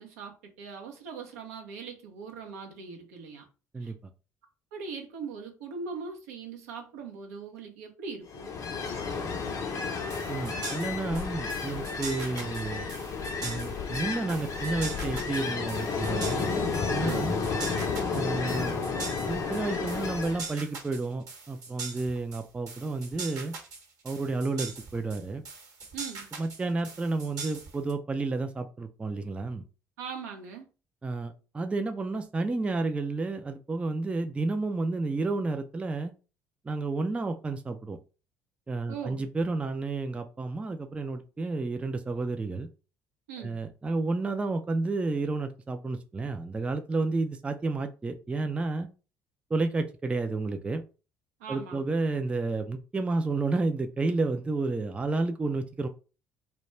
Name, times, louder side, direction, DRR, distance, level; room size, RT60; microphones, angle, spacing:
voice 1, 0.0-3.4 3.8-3.9 4.7-8.5 17.0-17.3 25.9-26.3 30.0-30.7 38.9-39.3 43.3-43.6 51.4-51.8, right 5 dB, 70° right, 0.6 m, -40 dB
Ocean, 8.3-20.5, left 5 dB, 40° left, 0.5 m, -32 dB
sound 1, 9.8-27.9, right 4 dB, 45° right, 1.0 m, -42 dB
voice 2, 10.3-12.9 13.4-16.5 16.9-17.4 18.1-18.8 19.3-23.5 24.0-25.4 26.4-29.6 31.0-36.1 36.7-38.0 38.7-42.7 43.4-48.9 49.5-50.8 51.5-55.9, right 3 dB, 15° right, 0.3 m, -31 dB
2.3 x 2.1 x 2.9 m
figure-of-eight pair, 55°, 8 cm